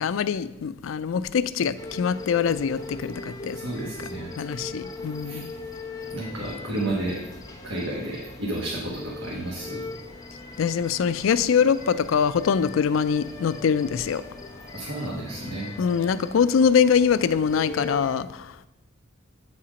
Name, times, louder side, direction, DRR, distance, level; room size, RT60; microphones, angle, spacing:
voice 1, 0.0-3.6 4.4-5.5 10.6-14.3 15.8-18.6, left 6 dB, 90° left, 0.4 m, -23 dB
sound 1, 1.8-18.1, left 2 dB, 20° left, 0.9 m, -40 dB
voice 2, 3.5-4.3 5.2-5.4 6.1-7.2 7.6-9.8 14.7-15.7, right 1 dB, 80° right, 1.3 m, -31 dB
8.4 x 4.3 x 5.0 m
head